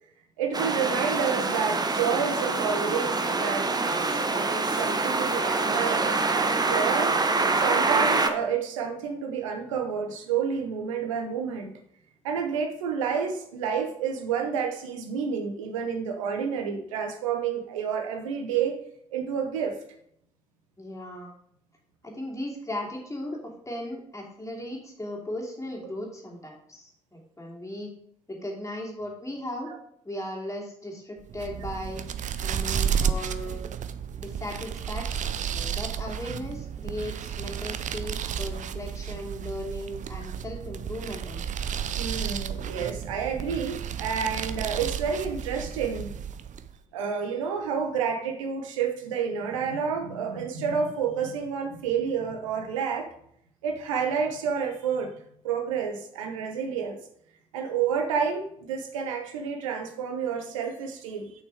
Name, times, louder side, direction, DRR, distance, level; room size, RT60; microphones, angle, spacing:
voice 1, 0.4-3.7 4.0-7.2 7.6-11.7 12.2-18.8 19.1-19.8 42.0-46.1 46.9-53.1 53.6-55.1 55.4-57.0 57.5-61.3, right 6 dB, 80° right, 5 dB, 0.9 m, -29 dB
sound 1, 0.5-8.3, right 3 dB, 25° right, 0.9 m, -25 dB
voice 2, 20.8-21.3 22.0-27.9 28.3-29.7 30.0-32.0 32.4-33.6 34.2-41.5, left 1 dB, 20° left, -1 dB, 2.7 m, -37 dB
sound 2, 31.2-46.8, right 8 dB, 50° right, 0.6 m, -32 dB
6.6 x 5.8 x 4.7 m, 0.68 s
figure-of-eight pair, 40°, 16 cm